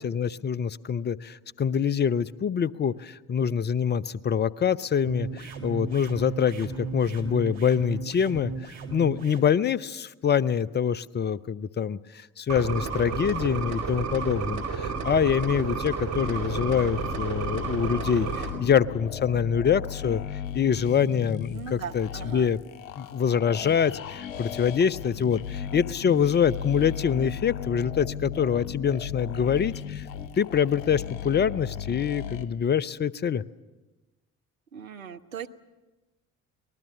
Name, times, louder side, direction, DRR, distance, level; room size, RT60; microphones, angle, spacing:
voice 1, 0.0-20.2 20.5-22.6 23.0-30.1 30.4-33.4, left 7 dB, 25° left, 19 dB, 0.7 m, -25 dB
sound 1, 5.1-9.5, right 4 dB, 65° right, 3.1 m, -36 dB
sound 2, 12.5-18.5, right 5 dB, 45° right, 4.9 m, -31 dB
sound 3, 16.1-32.5, left 8 dB, 65° left, 1.3 m, -36 dB
voice 2, 21.5-22.5 34.7-35.5, right 7 dB, 85° right, 6 dB, 0.8 m, -38 dB
24.5 x 20.0 x 7.3 m, 1.1 s
figure-of-eight pair, 50°, 40 cm